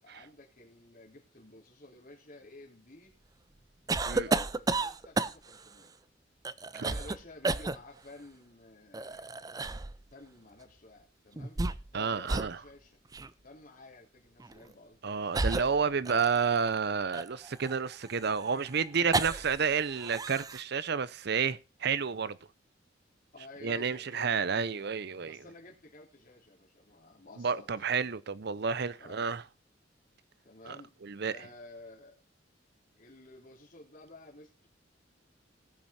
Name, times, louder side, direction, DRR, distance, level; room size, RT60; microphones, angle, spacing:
voice 1, 0.0-3.1 4.2-5.9 6.7-9.4 10.1-11.6 11.9-13.0 13.4-16.0 23.3-24.9 25.2-28.0 29.0-29.3 30.4-30.9 31.3-32.2 33.0-34.7, left 2 dB, 50° left, 3.4 m, -52 dB
sound 1, 3.9-5.6 6.4-7.2 7.4-7.8 8.9-9.9 11.4-12.0 12.3-12.5 13.1-13.3 14.4-14.6 15.3-16.6 17.1-19.6 19.9-20.6, right 3 dB, 20° right, 0.5 m, -32 dB
voice 2, 11.9-12.6 15.0-22.4 23.6-25.4 27.4-29.4 30.7-30.8 31.0-31.3, right 6 dB, 60° right, 0.7 m, -30 dB
18.5 x 6.2 x 4.3 m
head